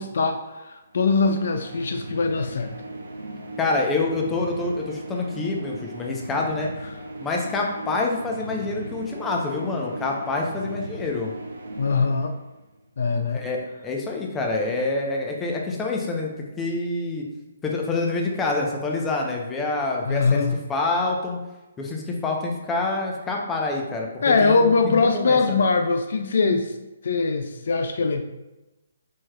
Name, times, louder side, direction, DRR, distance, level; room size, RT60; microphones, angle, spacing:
voice 1, 0.0-2.7 11.8-12.3 13.0-13.4 20.1-20.6 24.2-26.7 27.0-28.2, left 4 dB, 65° left, 7 dB, 0.3 m, -22 dB
sound 1, 0.9-12.8, right 1 dB, 70° right, 0.9 m, -37 dB
voice 2, 3.6-6.7 7.2-11.3 13.1-16.3 16.6-17.2 17.6-20.4 20.7-21.4 21.8-25.6, left 3 dB, 15° left, 0 dB, 0.7 m, -27 dB
4.5 x 4.4 x 2.3 m, 1.0 s
figure-of-eight pair, 135°, 0 cm